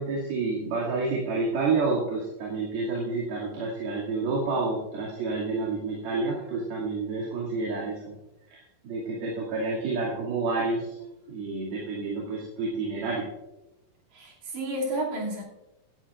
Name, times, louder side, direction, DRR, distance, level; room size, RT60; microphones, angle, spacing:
voice 1, 0.0-8.1 8.5-8.6 8.8-10.9 11.3-13.3, right 3 dB, 80° right, -6 dB, 4.3 m, -29 dB
voice 2, 14.1-15.4, right 1 dB, 55° right, -3 dB, 3.9 m, -31 dB
16.5 x 12.5 x 2.5 m, 0.94 s
omnidirectional pair, 4.3 m